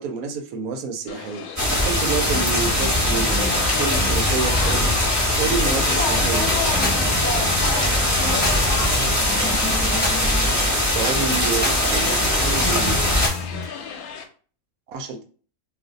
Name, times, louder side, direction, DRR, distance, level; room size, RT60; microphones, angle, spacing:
voice 1, 0.0-5.0 5.4-6.5 10.9-13.1 14.9-15.2, right 5 dB, 80° right, 1.1 m, -29 dB
sound 1, 1.1-14.2, left 7 dB, 90° left, 1.1 m, -35 dB
sound 2, 1.6-13.3, left 1 dB, 15° right, 0.8 m, -21 dB
sound 3, 5.5-13.6, left 2 dB, 10° left, 0.6 m, -30 dB
voice 2, 5.8-9.1, left 3 dB, 60° left, 0.8 m, -31 dB
2.5 x 2.4 x 3.9 m
omnidirectional pair, 1.5 m